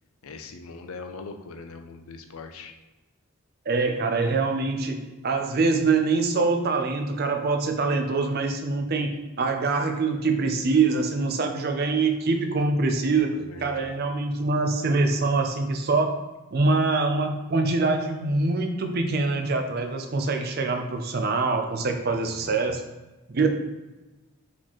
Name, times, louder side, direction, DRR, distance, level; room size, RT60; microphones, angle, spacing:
voice 1, 0.2-2.7 12.9-13.9 21.8-22.6 23.4-23.5, left 3 dB, 75° left, 6 dB, 0.5 m, -42 dB
voice 2, 3.7-13.3 13.6-16.2 16.5-22.8 23.3-23.5, right 3 dB, 45° right, 5 dB, 0.5 m, -24 dB
4.3 x 4.1 x 3.0 m, 1.1 s
head